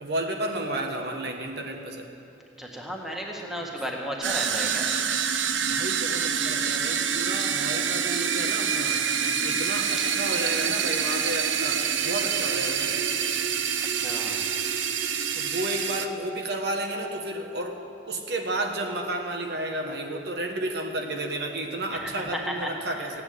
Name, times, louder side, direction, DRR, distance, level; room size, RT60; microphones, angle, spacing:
voice 1, 0.0-2.1 5.6-9.0 9.4-13.0 15.3-17.8 18.1-23.2, right 1 dB, 60° right, 3 dB, 1.3 m, -32 dB
voice 2, 2.6-4.9 9.2-9.6 9.9-10.1 13.8-14.5 21.9-23.2, equal, ahead, -1 dB, 1.7 m, -35 dB
sound 1, 4.2-16.1, right 7 dB, 90° right, 0.9 m, -26 dB
16.0 x 8.8 x 9.3 m, 2.7 s
head